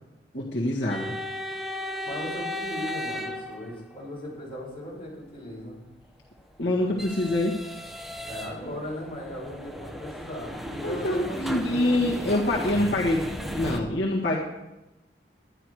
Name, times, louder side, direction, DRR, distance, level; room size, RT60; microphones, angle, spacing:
voice 1, 0.3-1.2 6.6-7.6 10.8-14.4, left 1 dB, 70° left, -4 dB, 1.8 m, -25 dB
sound 1, 0.9-4.1 6.1-13.8, equal, ahead, 0.9 m, -35 dB
voice 2, 2.1-5.8 8.3-12.3, equal, 30° left, -4 dB, 5.4 m, -37 dB
11.0 x 11.0 x 4.7 m, 0.97 s
head